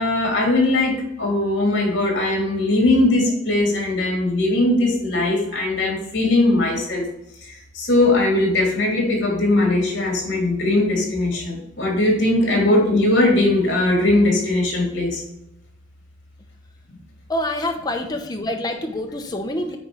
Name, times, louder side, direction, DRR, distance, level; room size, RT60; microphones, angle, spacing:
voice 1, 0.0-7.0 7.7-15.2, left 2 dB, 60° left, -1 dB, 3.2 m, -19 dB
voice 2, 17.3-19.8, left 1 dB, 20° left, 3 dB, 0.9 m, -26 dB
9.0 x 4.4 x 5.1 m, 0.83 s
head